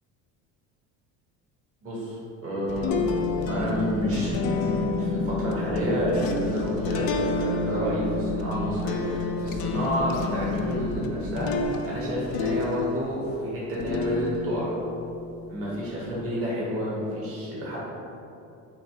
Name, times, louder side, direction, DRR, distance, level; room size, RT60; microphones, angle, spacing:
voice 1, 1.8-3.0 3.5-7.0 7.3-14.7 15.5-17.8, equal, 35° right, -7 dB, 1.4 m, -30 dB
sound 1, 2.7-13.3 13.7-16.1, left 4 dB, 60° left, 0.5 m, -31 dB
sound 2, 2.9-11.6, left 2 dB, 5° left, 0.8 m, -32 dB
3.9 x 2.6 x 4.5 m, 2.7 s
supercardioid pair, 90°, 40 cm